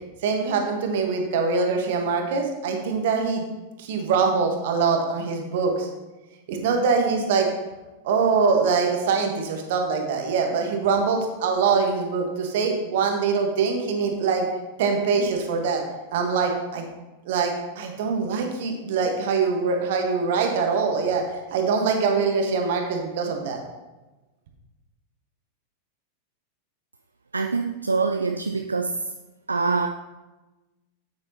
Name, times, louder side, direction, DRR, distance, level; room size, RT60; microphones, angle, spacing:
voice 1, 0.2-3.4 3.8-5.9 6.5-7.5 8.0-14.5 14.8-15.8 16.1-16.8 17.2-21.2 21.5-23.6, right 5 dB, 55° right, 3 dB, 1.4 m, -23 dB
voice 2, 27.3-29.1 29.5-29.9, right 4 dB, 80° right, 4 dB, 0.3 m, -25 dB
8.7 x 8.3 x 2.9 m, 1.1 s
figure-of-eight pair, 90°, 0 cm